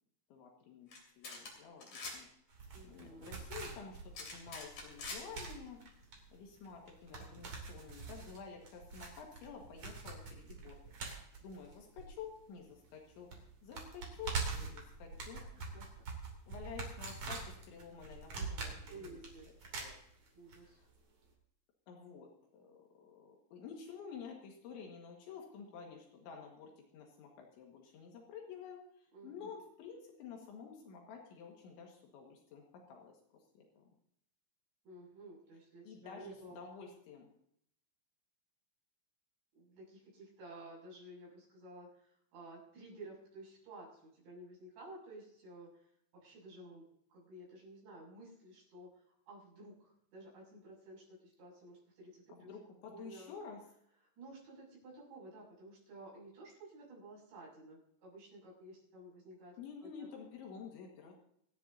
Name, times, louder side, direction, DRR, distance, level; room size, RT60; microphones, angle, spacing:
voice 1, 0.3-2.3 2.8-5.8 6.3-10.8 11.1-15.4 16.5-19.2 19.6-19.9 20.6-20.9 21.9-33.1 33.6-33.8 35.9-37.3 52.3-53.6 59.6-61.2, left 6 dB, 80° left, 1 dB, 4.0 m, -51 dB
sound 1, 0.9-1.5 1.8-2.2 4.1-5.2, left 3 dB, 40° left, 4.1 m, -44 dB
sound 2, 2.5-12.6 12.9-13.0 13.3-20.6 20.8-20.9, right 4 dB, 40° right, 3.6 m, -44 dB
voice 2, 2.7-3.4 15.4-16.2 18.9-19.5 20.3-20.8 29.1-29.5 34.8-36.6 39.6-45.8 46.1-52.5 52.9-53.3 54.2-60.1, right 2 dB, 70° right, -4 dB, 9.1 m, -53 dB
27.5 x 10.0 x 2.8 m, 0.71 s
omnidirectional pair, 5.3 m